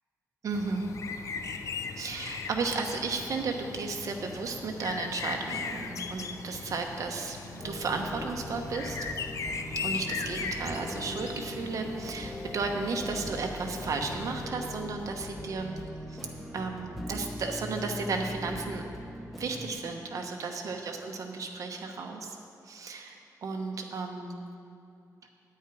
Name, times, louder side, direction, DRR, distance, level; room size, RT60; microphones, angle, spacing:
voice 1, 0.4-0.9 2.0-9.0 9.8-15.7 16.1-16.3 16.5-18.9 19.3-22.4 22.6-24.4, right 4 dB, 60° right, 2 dB, 1.0 m, -34 dB
sound 1, 0.5-14.5, left 5 dB, 55° left, 0.5 m, -39 dB
sound 2, 7.6-19.7, equal, ahead, 0.8 m, -41 dB
9.1 x 8.8 x 4.8 m, 2.6 s
wide cardioid pair, 170°, 6 cm